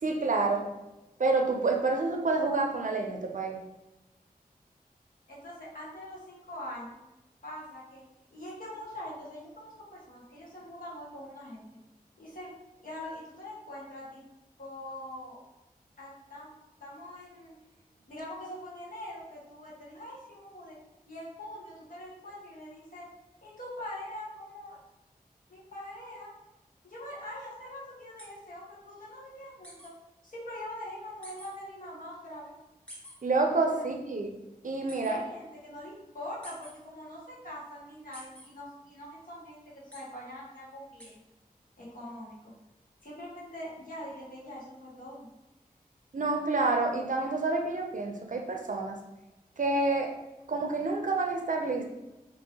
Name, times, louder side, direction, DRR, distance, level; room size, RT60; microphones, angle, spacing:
voice 1, 0.0-0.6 1.2-3.6 33.2-34.3 34.6-35.2 46.1-49.0 49.6-50.1 50.5-51.9, right 3 dB, 55° right, 2 dB, 0.5 m, -28 dB
voice 2, 5.3-7.0 7.4-8.0 8.3-11.7 12.2-12.5 12.8-14.2 14.6-15.4 16.0-16.5 16.8-17.5 18.1-20.8 21.1-23.1 23.4-24.8 25.5-26.3 26.8-29.9 30.2-32.5 33.8-33.9 35.0-41.2 41.8-42.4 43.0-45.3, left 1 dB, 60° left, -6 dB, 1.3 m, -43 dB
sound 1, 28.2-28.3 29.6-29.9 31.2-31.5 32.9-33.1 34.9-35.1 36.4-36.7 38.1-38.5 39.9-40.0 41.0-41.1, equal, 5° left, 1.1 m, -47 dB
2.8 x 2.7 x 2.8 m, 0.99 s
cardioid pair, 40°, 16 cm